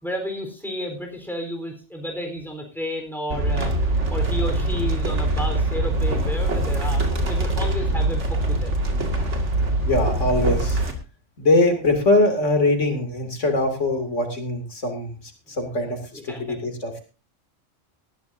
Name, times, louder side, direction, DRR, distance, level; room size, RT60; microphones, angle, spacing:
voice 1, 0.0-3.7 4.1-8.8 16.3-16.6, equal, ahead, 2 dB, 3.8 m, -32 dB
sound 1, 3.3-10.9, right 1 dB, 75° right, 2.5 m, -23 dB
voice 2, 9.8-10.8 11.4-16.9, left 2 dB, 80° left, 4 dB, 3.0 m, -22 dB
19.5 x 13.5 x 2.7 m, 0.33 s
omnidirectional pair, 1.2 m